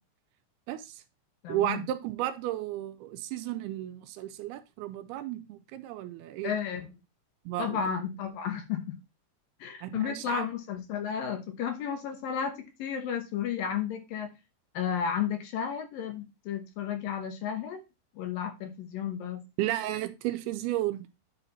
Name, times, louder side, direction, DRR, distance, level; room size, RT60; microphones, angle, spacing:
voice 1, 0.7-1.0 1.5-6.5 7.5-7.8 9.8-10.5 19.6-21.1, right 14 dB, 85° right, 10 dB, 2.5 m, -33 dB
voice 2, 1.4-1.8 6.4-6.9 7.6-9.0 9.6-14.3 14.7-17.8 18.2-19.4, left 8 dB, 70° left, 6 dB, 2.6 m, -33 dB
9.8 x 4.2 x 4.1 m, 0.25 s
omnidirectional pair, 4.7 m